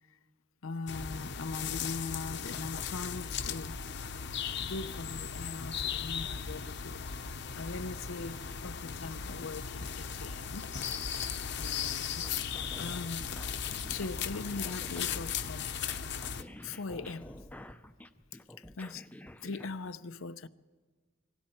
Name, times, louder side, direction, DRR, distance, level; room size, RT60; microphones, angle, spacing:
voice 1, 0.6-3.8 4.6-10.7 11.6-13.2 13.7-15.7 16.6-17.4 18.6-19.0 19.4-20.5, left 3 dB, 90° left, 0.7 m, -41 dB
sound 1, 0.9-16.4, left 7 dB, 60° left, 0.9 m, -37 dB
sound 2, 12.1-19.7, left 1 dB, 10° left, 0.7 m, -49 dB
25.5 x 24.0 x 4.4 m
head